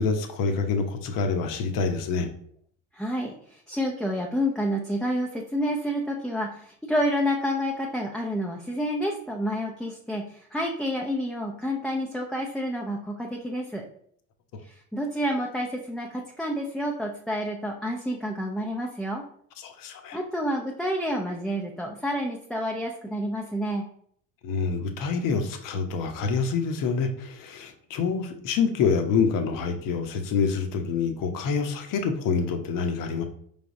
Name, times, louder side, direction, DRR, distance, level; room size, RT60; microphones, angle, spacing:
voice 1, 0.0-2.3 19.6-20.2 24.4-33.2, left 5 dB, 55° left, 6 dB, 0.8 m, -26 dB
voice 2, 2.9-13.8 14.6-19.2 20.1-23.8, equal, ahead, -1 dB, 0.5 m, -29 dB
4.6 x 3.4 x 2.6 m, 0.62 s
hypercardioid pair, 75°, 38 cm